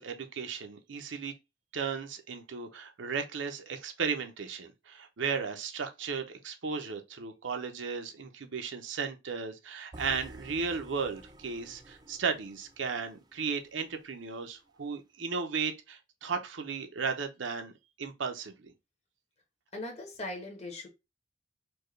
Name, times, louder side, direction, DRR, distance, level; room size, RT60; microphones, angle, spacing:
voice 1, 0.0-1.3 1.7-17.7 18.0-18.7, right 5 dB, 85° right, 0.7 m, -35 dB
sound 1, 9.9-14.0, right 2 dB, 20° right, 0.4 m, -51 dB
voice 2, 19.7-20.9, left 2 dB, 35° left, 1.0 m, -39 dB
4.4 x 2.2 x 3.1 m
head